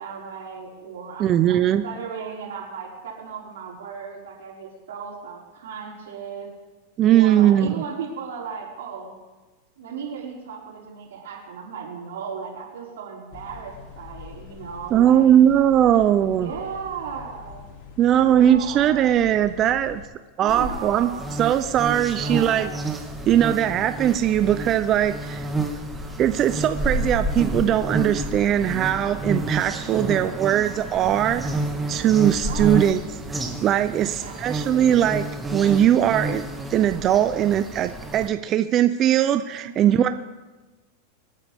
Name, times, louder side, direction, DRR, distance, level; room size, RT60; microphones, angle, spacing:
voice 1, 0.0-6.5 7.1-9.1 9.8-15.3 16.3-17.7 18.3-19.1 20.4-21.4 22.1-22.8 29.9-30.6 32.4-32.9 33.9-35.0 39.6-40.1, right 6 dB, 90° right, -4 dB, 5.2 m, -36 dB
voice 2, 1.2-1.8 7.0-7.8 14.9-16.5 18.0-20.0 20.4-21.1 21.4-22.7 23.3-25.5 26.2-31.4 31.9-33.0 33.3-35.2 35.5-36.4 36.7-40.1, right 10 dB, 30° right, 9 dB, 0.5 m, -20 dB
sound 1, 13.3-20.1, left 5 dB, 50° left, 2.7 m, -44 dB
sound 2, 20.5-38.3, right 2 dB, 10° right, 1.4 m, -30 dB
25.5 x 9.2 x 3.6 m, 1.2 s
supercardioid pair, 145°, 0 cm